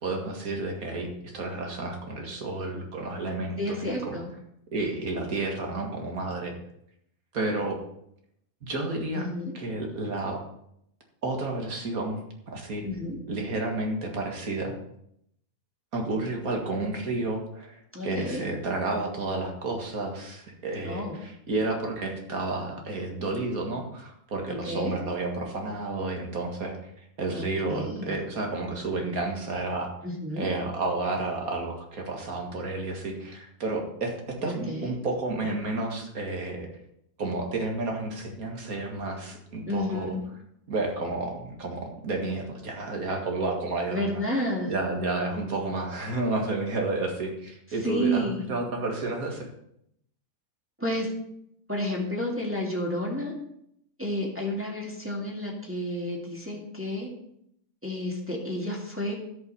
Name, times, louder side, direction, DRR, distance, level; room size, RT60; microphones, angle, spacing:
voice 1, 0.0-4.2 4.7-6.5 7.3-7.8 8.6-9.3 9.5-10.4 11.2-12.2 12.5-12.9 13.3-14.7 15.9-26.9 27.2-29.9 30.4-36.7 37.2-40.1 40.7-44.2 44.7-49.5, right 2 dB, 70° right, 1 dB, 2.3 m, -31 dB
voice 2, 3.6-4.3 9.1-9.5 12.8-13.2 17.9-18.4 20.8-21.2 24.5-24.9 27.3-28.2 30.0-30.5 34.4-34.9 39.7-40.2 43.9-44.7 47.8-48.4 50.8-51.1 51.7-53.3 54.0-57.1 57.8-59.1, equal, 10° right, -2 dB, 2.2 m, -31 dB
12.5 x 5.7 x 5.6 m, 0.74 s
omnidirectional pair, 1.5 m